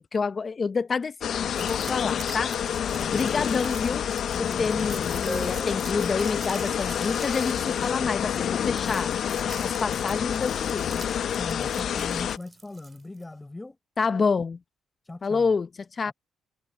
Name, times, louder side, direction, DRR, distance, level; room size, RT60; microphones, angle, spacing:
voice 1, 0.0-2.5 3.1-4.1 4.4-9.1 9.6-11.0 14.0-14.6 15.2-16.1, left 5 dB, 40° left, 1.0 m, -28 dB
sound 1, 1.2-12.4, left 9 dB, 65° left, 0.7 m, -28 dB
sound 2, 1.5-13.2, right 5 dB, 35° right, 3.9 m, -45 dB
voice 2, 3.0-3.3 11.4-13.8 15.1-15.5 16.1-16.2, left 2 dB, 15° left, 7.2 m, -40 dB
sound 3, 5.3-8.8, right 2 dB, 15° right, 1.7 m, -42 dB
cardioid pair, 90°, 0 cm